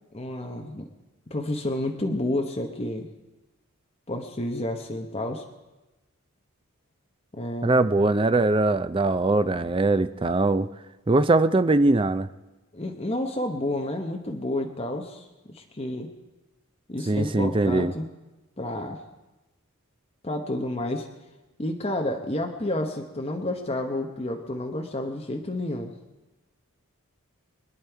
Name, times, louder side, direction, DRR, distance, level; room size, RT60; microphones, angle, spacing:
voice 1, 0.1-0.9 1.3-3.1 4.1-5.4 7.3-7.8 12.7-16.1 16.9-18.1 18.6-19.0 20.2-21.1 21.6-25.9, left 1 dB, 30° left, 3 dB, 0.9 m, -30 dB
voice 2, 7.6-10.7 11.1-12.3 17.1-17.9, right 2 dB, 25° right, 12 dB, 0.4 m, -21 dB
24.5 x 9.6 x 4.6 m, 1.1 s
head